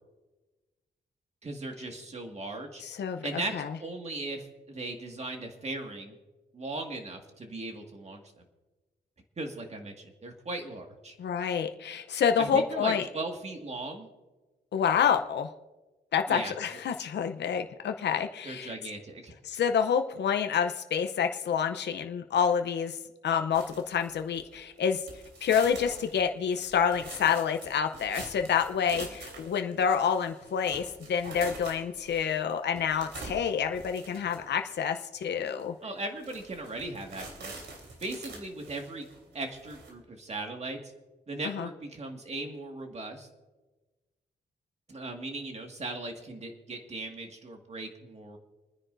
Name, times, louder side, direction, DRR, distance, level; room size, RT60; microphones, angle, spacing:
voice 1, 1.4-2.8 3.2-3.5 3.8-6.2 6.5-8.4 9.4-11.1 12.4-14.1 16.3-16.5 18.4-19.3 35.8-37.6 38.0-39.1 39.3-40.9 41.3-43.3 44.9-48.4, right 2 dB, 35° right, 3 dB, 1.9 m, -38 dB
voice 2, 2.8-3.7 11.2-13.1 14.7-15.5 16.1-18.7 19.4-23.0 23.2-25.0 25.4-35.7 41.4-41.7, left 7 dB, 70° left, 6 dB, 0.7 m, -28 dB
sound 1, 23.5-24.8 25.1-34.7 35.2-35.3 35.6-35.7 36.1-39.9, right 2 dB, 80° right, 3.5 m, -45 dB
29.0 x 10.0 x 2.6 m, 1.2 s
wide cardioid pair, 130°, 18 cm